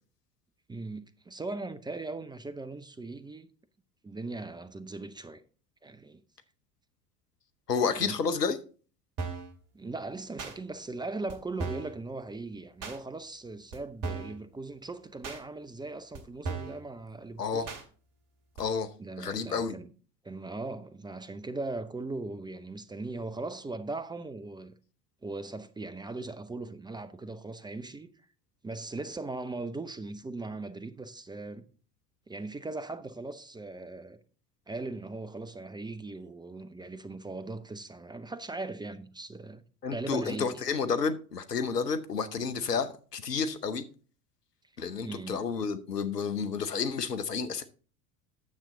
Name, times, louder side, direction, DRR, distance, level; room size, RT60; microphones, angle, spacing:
voice 1, 0.7-3.5 4.0-5.4 5.8-6.2 7.8-8.2 9.7-17.7 19.0-19.9 20.2-24.7 25.2-28.1 28.6-31.6 32.3-34.2 34.7-39.6 39.9-40.6 45.0-45.4, right 3 dB, 10° right, 0.6 m, -39 dB
voice 2, 7.7-8.6 17.4-17.7 18.6-18.9 19.2-19.7 39.8-43.9 44.8-47.6, left 5 dB, 85° left, 0.9 m, -30 dB
sound 1, 9.2-9.5 10.4-10.5 11.3-11.4 11.6-11.9 12.8-13.0 13.7-13.8 14.0-14.4 15.2-15.4 16.1-16.2 16.4-16.8 17.7-17.8 18.6-18.7, right 4 dB, 45° right, 2.3 m, -36 dB
9.6 x 7.4 x 3.8 m
figure-of-eight pair, 70°, 46 cm